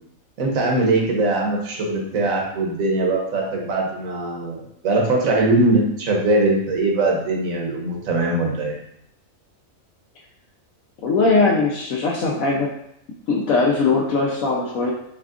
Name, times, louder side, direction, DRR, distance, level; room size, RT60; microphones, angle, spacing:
voice 1, 0.4-8.8, right 2 dB, 75° right, 0 dB, 1.3 m, -21 dB
voice 2, 11.0-12.7 13.3-14.9, left 3 dB, 75° left, -3 dB, 1.1 m, -20 dB
4.4 x 3.4 x 2.4 m, 0.73 s
omnidirectional pair, 1.5 m